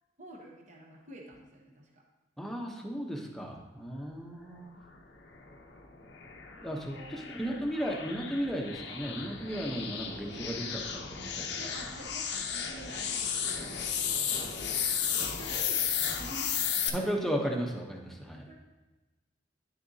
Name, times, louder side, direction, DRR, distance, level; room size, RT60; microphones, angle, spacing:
voice 1, 0.2-2.0 6.8-7.8 11.6-17.5 18.3-18.6, right 1 dB, 40° right, 0 dB, 1.0 m, -49 dB
voice 2, 2.4-4.8 6.6-11.7 16.9-18.4, equal, ahead, 0 dB, 0.8 m, -35 dB
sound 1, 5.3-16.9, left 7 dB, 70° left, 0.7 m, -34 dB
9.8 x 6.7 x 2.8 m, 1.2 s
head